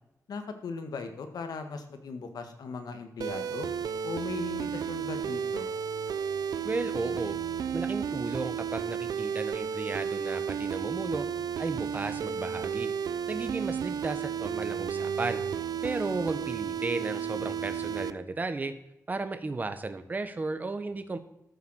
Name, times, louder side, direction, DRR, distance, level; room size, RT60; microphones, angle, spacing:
voice 1, 0.3-3.7 4.0-5.7, left 4 dB, 90° left, 7 dB, 1.7 m, -38 dB
sound 1, 3.2-18.1, right 7 dB, 85° right, 0.6 m, -33 dB
voice 2, 6.6-7.4 7.7-11.3 11.6-12.9 13.3-15.4 15.8-18.7 19.1-21.2, right 3 dB, 25° right, 9 dB, 1.1 m, -34 dB
14.0 x 7.0 x 6.3 m, 0.83 s
wide cardioid pair, 155°, 6 cm